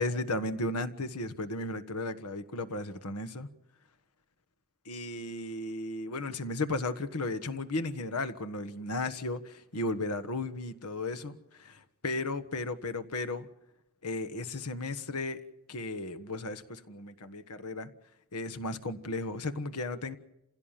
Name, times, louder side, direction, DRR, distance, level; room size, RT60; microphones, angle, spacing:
voice 1, 0.0-3.5 4.8-13.5 14.0-15.4 15.7-17.9 18.3-20.2, left 2 dB, 90° left, 1.5 m, -35 dB
28.0 x 16.5 x 7.5 m
head